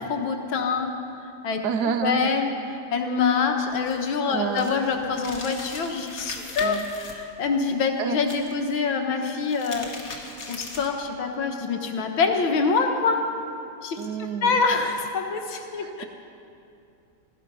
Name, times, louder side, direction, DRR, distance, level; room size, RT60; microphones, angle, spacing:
voice 1, 0.0-9.9 10.4-13.2 13.8-14.1 14.4-16.1, left 5 dB, 90° left, 4 dB, 2.1 m, -25 dB
voice 2, 1.6-2.3 4.3-4.7 6.6-6.8 7.7-8.2 14.0-14.6, right 6 dB, 65° right, 9 dB, 1.2 m, -28 dB
sound 1, 3.7-7.1 8.2-8.8 9.3-11.0, left 3 dB, 45° left, 2.1 m, -39 dB
17.0 x 15.0 x 5.5 m, 2.6 s
omnidirectional pair, 2.1 m